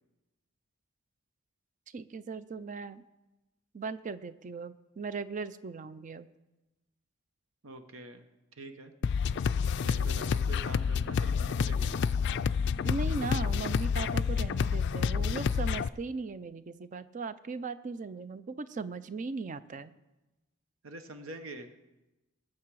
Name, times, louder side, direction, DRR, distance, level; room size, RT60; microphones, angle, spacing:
voice 1, 1.9-3.0 3.7-6.3 12.8-19.9, right 4 dB, 40° right, 14 dB, 0.4 m, -38 dB
voice 2, 7.6-8.2 8.6-8.9 9.8-12.1 20.8-21.7, right 2 dB, 80° right, 7 dB, 1.0 m, -45 dB
sound 1, 9.0-15.9, left 6 dB, 55° left, 0.3 m, -29 dB
Wind instrument woodwind instrument, 10.4-14.8, equal, 5° left, 0.9 m, -53 dB
19.5 x 7.6 x 4.7 m, 1.0 s
head